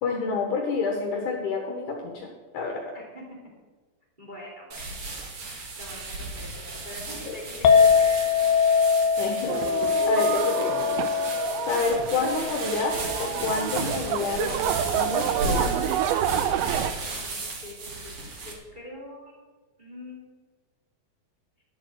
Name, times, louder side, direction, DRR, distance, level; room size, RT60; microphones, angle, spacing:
voice 1, 0.0-2.9 7.3-7.4 9.2-9.6 10.1-10.8 11.6-15.8, left 4 dB, 65° left, 2 dB, 2.3 m, -29 dB
voice 2, 4.2-4.8 5.8-8.2 17.1-18.2 18.4-19.4 19.8-20.4, left 1 dB, 15° right, -4 dB, 2.4 m, -44 dB
sound 1, 4.7-18.5, right 2 dB, 50° right, 2.6 m, -34 dB
Chink clink, 7.7-13.9, left 6 dB, 90° left, 2.9 m, -23 dB
sound 2, 9.5-16.9, right 11 dB, 85° right, 2.5 m, -28 dB
11.0 x 7.6 x 7.7 m, 1.3 s
omnidirectional pair, 4.4 m